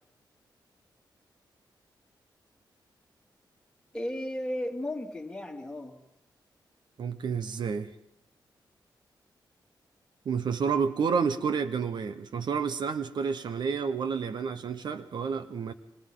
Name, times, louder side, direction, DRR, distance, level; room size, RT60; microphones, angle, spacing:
voice 1, 3.9-6.0, left 1 dB, 10° left, 2.3 m, -34 dB
voice 2, 7.0-7.9 10.2-15.7, right 6 dB, 65° right, 0.9 m, -30 dB
29.0 x 24.0 x 3.8 m
wide cardioid pair, 150°, 8 cm